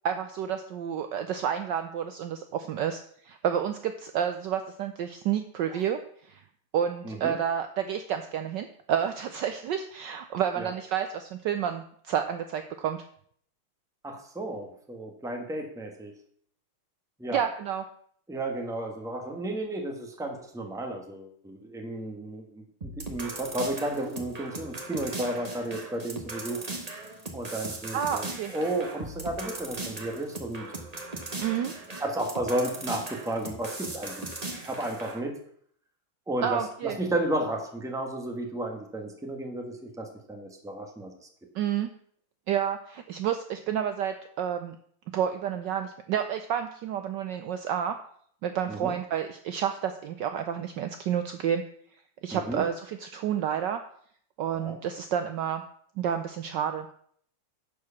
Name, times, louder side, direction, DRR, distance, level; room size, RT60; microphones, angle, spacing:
voice 1, 0.0-6.0 6.3-6.4 6.7-13.0 17.3-17.8 27.9-28.5 31.4-31.7 36.4-37.0 41.5-41.9 42.5-44.8 45.1-48.0 48.4-51.6 52.2-53.8 54.4-55.6 56.0-56.9, right 9 dB, 70° right, 8 dB, 1.1 m, -30 dB
voice 2, 7.0-7.4 10.6-10.7 14.0-16.1 17.2-17.4 18.3-26.6 27.3-28.3 28.5-30.7 32.0-34.3 34.6-35.4 36.3-41.1 48.7-48.9 52.3-52.6 54.5-54.8, right 1 dB, ahead, 3 dB, 1.2 m, -33 dB
sound 1, 22.8-35.2, right 2 dB, 25° right, 1.1 m, -38 dB
11.0 x 4.8 x 7.0 m, 0.62 s
omnidirectional pair, 2.4 m